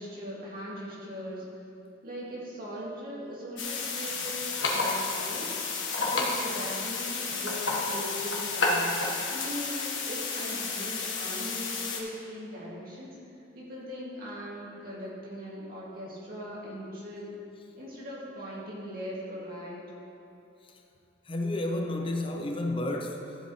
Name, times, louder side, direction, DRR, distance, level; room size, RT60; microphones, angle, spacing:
voice 1, 0.0-1.4 2.0-4.3 4.7-5.7 6.1-9.0 9.3-13.2 13.5-17.3 17.8-19.9, equal, 50° right, -6 dB, 2.3 m, -39 dB
sound 1, 3.6-12.0, left 3 dB, 90° left, 1.4 m, -31 dB
voice 2, 21.3-23.4, left 1 dB, 30° left, 2 dB, 0.6 m, -31 dB
13.5 x 7.7 x 3.2 m, 2.8 s
head